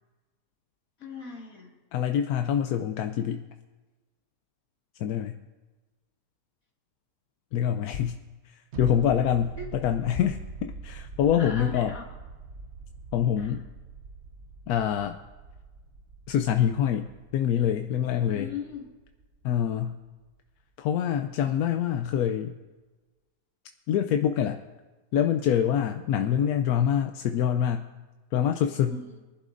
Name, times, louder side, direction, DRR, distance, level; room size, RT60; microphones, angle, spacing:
voice 1, 1.0-1.7 9.6-9.7 11.4-12.0 13.4-13.7 18.3-18.9 28.8-29.2, left 4 dB, 50° left, -1 dB, 2.5 m, -38 dB
voice 2, 1.9-3.4 5.0-5.4 7.5-8.2 8.5-11.9 13.1-13.6 14.7-15.2 16.3-17.1 17.3-18.5 19.4-20.0 20.8-22.6 23.9-24.6 25.1-27.8 28.3-29.0, left 9 dB, 70° left, 6 dB, 1.0 m, -25 dB
sound 1, 8.7-20.1 20.4-20.5, right 4 dB, 50° right, 0.9 m, -43 dB
23.5 x 11.5 x 2.6 m, 1.2 s
omnidirectional pair, 1.8 m